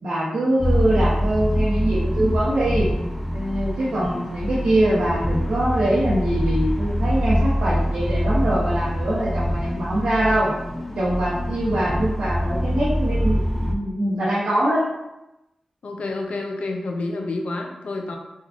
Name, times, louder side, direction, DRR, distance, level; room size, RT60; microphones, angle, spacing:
voice 1, 0.0-2.9 3.3-10.5 11.0-14.8, right 1 dB, 75° right, -9 dB, 0.7 m, -23 dB
sound 1, 0.6-13.7, equal, 5° left, 0.5 m, -24 dB
voice 2, 15.8-18.2, left 2 dB, 75° left, 2 dB, 0.4 m, -29 dB
3.7 x 2.3 x 2.3 m, 0.94 s
cardioid pair, 40°, 2 cm